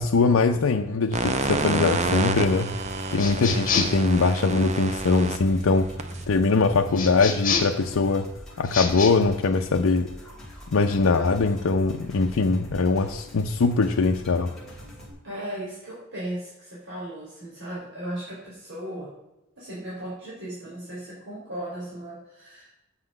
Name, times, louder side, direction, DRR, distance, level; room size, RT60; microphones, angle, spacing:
voice 1, 0.0-2.8 3.1-5.9 6.3-8.3 8.6-10.1 10.7-14.5, left 3 dB, 75° left, 3 dB, 0.5 m, -22 dB
sound 1, 1.1-7.2, right 3 dB, 35° right, 0.6 m, -29 dB
sound 2, 1.4-15.1, equal, ahead, 2.5 m, -44 dB
sound 3, 3.2-4.1 6.9-7.8 8.6-9.1, left 6 dB, 40° left, 1.4 m, -27 dB
voice 2, 15.2-19.1 19.6-22.7, right 1 dB, 60° right, -8 dB, 3.3 m, -36 dB
8.2 x 5.9 x 6.5 m, 0.96 s
head